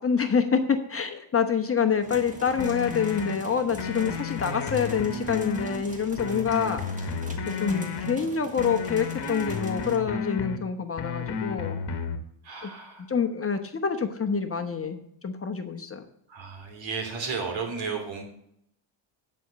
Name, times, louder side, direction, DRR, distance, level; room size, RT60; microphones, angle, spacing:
voice 1, 0.0-7.1 7.5-11.8 12.6-12.7 13.1-16.0, left 6 dB, 30° left, 7 dB, 1.1 m, -27 dB
sound 1, 2.0-10.0, right 1 dB, 15° right, 1.9 m, -43 dB
sound 2, 2.6-3.4 3.8-5.8 6.2-8.2 8.6-10.6 11.0-12.2, left 6 dB, 55° left, 1.4 m, -32 dB
voice 2, 12.4-13.1 16.3-18.2, right 5 dB, 70° right, 3 dB, 3.0 m, -33 dB
9.8 x 4.6 x 7.7 m, 0.73 s
cardioid pair, 80°, 48 cm